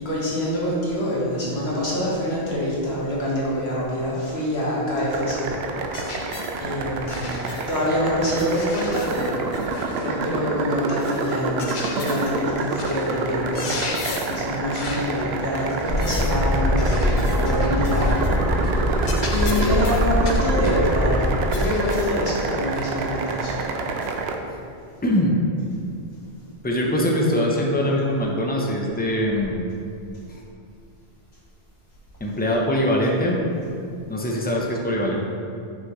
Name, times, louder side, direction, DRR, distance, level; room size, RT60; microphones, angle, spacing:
voice 1, 0.0-5.5 6.6-7.4 7.7-9.6 10.0-13.7 14.2-21.3 21.5-23.6, left 1 dB, 85° left, -6 dB, 1.7 m, -26 dB
sound 1, 5.1-24.4, right 3 dB, 85° right, 0.8 m, -28 dB
sound 2, 5.9-6.6 7.1-7.8 8.3-10.1 10.9-12.4 12.8-13.1 13.4-14.4 14.7-15.1 15.7-16.4 16.8-18.4 18.6-18.8 19.0-20.8 21.5-22.2 22.7-22.9 24.0-24.1, left 3 dB, 55° left, 0.8 m, -35 dB
sound 3, 15.9-21.5, left 1 dB, 65° right, 1.8 m, -23 dB
voice 2, 25.0-25.4 26.6-29.7 30.3-30.4 32.2-33.4 34.1-35.2, equal, 10° left, -1 dB, 0.6 m, -22 dB
5.9 x 5.8 x 3.1 m, 2.4 s
omnidirectional pair, 1.0 m